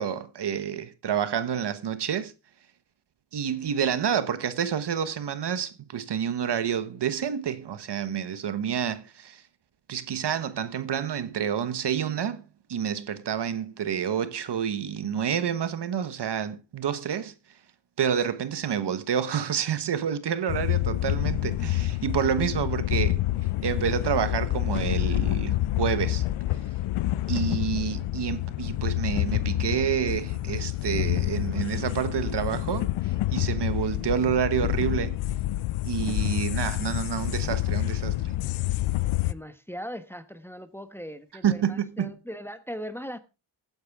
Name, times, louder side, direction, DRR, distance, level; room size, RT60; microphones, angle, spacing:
voice 1, 0.0-2.3 3.3-9.4 9.9-12.4 12.7-17.3 18.0-23.2 23.6-26.2 27.3-35.2 35.8-38.3 41.4-42.1, right 8 dB, 55° right, 1.2 m, -28 dB
sound 1, 20.5-39.3, left 16 dB, 85° left, 0.6 m, -28 dB
voice 2, 39.2-43.2, equal, 5° left, 1.1 m, -39 dB
16.5 x 9.6 x 3.6 m
cardioid pair, 90°, 48 cm